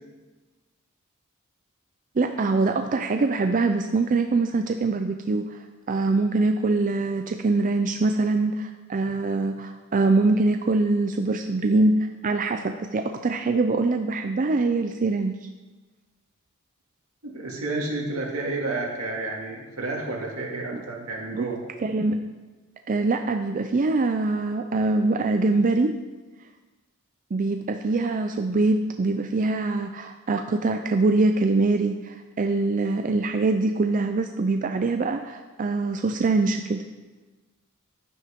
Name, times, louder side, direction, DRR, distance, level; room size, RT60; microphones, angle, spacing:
voice 1, 2.2-15.3 20.7-20.8 21.3-21.5 21.8-22.2 22.9-26.0 27.3-36.8, right 3 dB, 40° right, 6 dB, 0.4 m, -23 dB
voice 2, 17.2-21.6, right 2 dB, 75° right, -1 dB, 2.2 m, -30 dB
11.0 x 9.5 x 3.6 m, 1.2 s
head